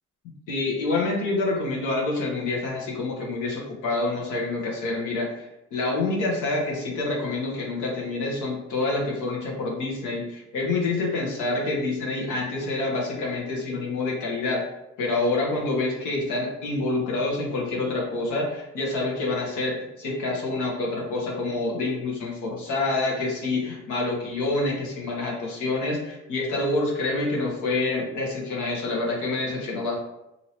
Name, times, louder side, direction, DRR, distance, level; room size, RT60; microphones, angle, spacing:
voice 1, 0.5-14.6 15.0-30.0, left 2 dB, 90° left, -2 dB, 1.0 m, -27 dB
3.0 x 2.7 x 2.7 m, 0.92 s
cardioid pair, 90°, 30 cm